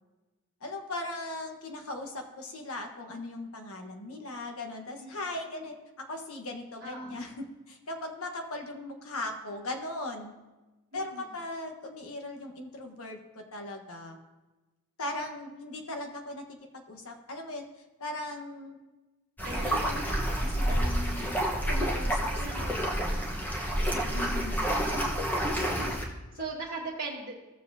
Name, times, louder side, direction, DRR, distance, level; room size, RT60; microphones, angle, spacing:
voice 1, 0.6-5.8 6.1-10.3 10.9-14.2 15.0-17.7 18.0-18.8 19.5-20.0 20.4-21.3 21.7-22.3 22.6-23.2 23.9-24.6, left 2 dB, 75° left, 4 dB, 1.3 m, -39 dB
voice 2, 6.8-7.2 10.9-11.3 19.4-20.4 22.3-23.2 23.7-24.7 25.3-25.9 26.3-27.3, right 3 dB, 45° right, -6 dB, 1.4 m, -41 dB
sound 1, 19.4-26.0, equal, 10° left, 1.1 m, -29 dB
16.0 x 7.0 x 2.8 m, 1.1 s
head